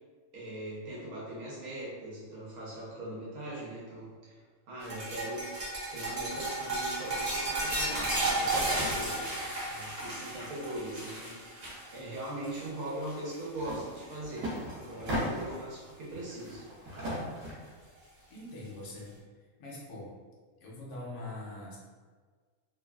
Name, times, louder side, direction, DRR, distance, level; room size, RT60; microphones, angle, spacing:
voice 1, 0.3-5.5 5.9-9.2 9.7-11.4 11.9-16.7, right 1 dB, 85° right, -7 dB, 1.4 m, -40 dB
sound 1, 4.8-13.3 13.6-14.0 14.4-15.3 16.6-16.7 18.0-18.1, right 2 dB, 45° right, 0.6 m, -33 dB
sound 2, 13.6-13.8 14.1-15.6 16.1-17.7, equal, 65° right, 1.2 m, -36 dB
voice 2, 18.3-19.2 19.6-20.1 20.6-21.8, left 2 dB, 65° left, -4 dB, 1.0 m, -43 dB
3.2 x 2.3 x 2.3 m, 1.5 s
omnidirectional pair, 1.5 m